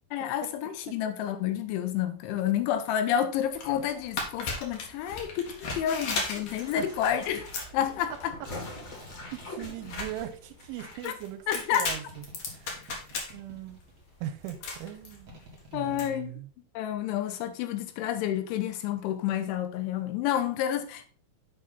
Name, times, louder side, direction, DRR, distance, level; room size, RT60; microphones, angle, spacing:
voice 1, 0.1-7.5 7.7-8.3 11.0-11.1 11.5-11.9 15.7-16.3 16.8-21.1, left 10 dB, 85° left, 3.1 m, -29 dB
sound 1, 3.4-16.1, left 3 dB, 65° left, 1.6 m, -38 dB
sound 2, 6.4-11.1 11.4-11.5, left 1 dB, 40° left, 1.6 m, -44 dB
voice 2, 6.6-6.9 8.1-8.5 9.3-12.9 13.3-13.8 14.2-15.3 15.7-16.5, right 12 dB, 85° right, 3.0 m, -40 dB
sound 3, 7.3-7.9 8.8-10.9 11.9-14.1 15.3-16.2, right 1 dB, 55° right, 1.1 m, -52 dB
7.8 x 5.0 x 4.1 m
omnidirectional pair, 5.5 m